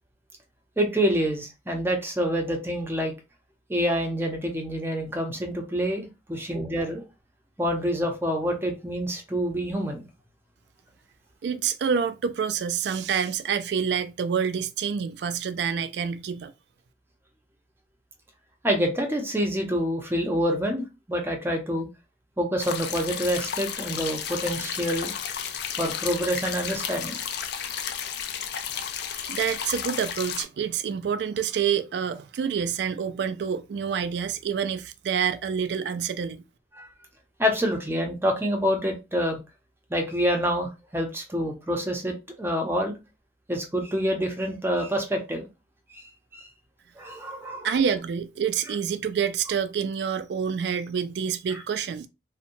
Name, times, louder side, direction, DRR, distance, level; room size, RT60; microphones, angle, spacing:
voice 1, 0.8-3.1 3.7-7.0 7.6-10.0 18.6-20.8 21.1-21.9 22.4-25.1 25.8-27.2 36.8-36.9 37.4-39.4 39.9-42.9 43.5-45.5 45.9-46.1 46.3-46.5 47.0-47.7 51.5-51.6, equal, 15° right, 0.6 m, -27 dB
voice 2, 11.4-16.5 28.7-28.8 29.2-36.4 47.6-52.1, right 7 dB, 65° right, 0.3 m, -27 dB
sound 1, 22.6-30.4, left 8 dB, 65° left, 0.4 m, -32 dB
2.8 x 2.1 x 2.5 m
head